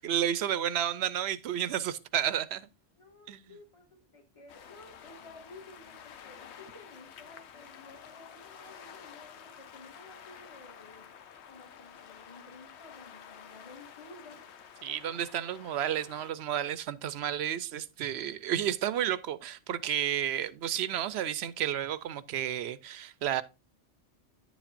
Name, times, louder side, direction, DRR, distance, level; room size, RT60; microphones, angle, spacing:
voice 1, 0.0-2.7 3.3-3.4 14.8-23.4, right 10 dB, 75° right, 0.8 m, -31 dB
voice 2, 3.0-11.1 11.5-14.5, left 2 dB, 30° left, 1.8 m, -53 dB
sound 1, 4.5-16.3, left 8 dB, 80° left, 1.0 m, -50 dB
9.8 x 7.1 x 2.5 m
omnidirectional pair, 1.1 m